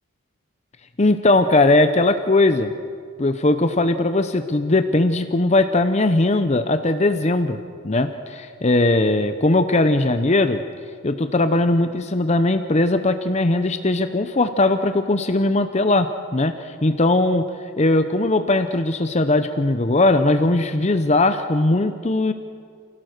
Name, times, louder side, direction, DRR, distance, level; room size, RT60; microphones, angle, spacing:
voice 1, 1.0-2.7 3.2-10.6 11.0-17.4 17.8-22.3, left 2 dB, 30° left, 9 dB, 0.7 m, -19 dB
28.5 x 16.5 x 6.6 m, 2.2 s
head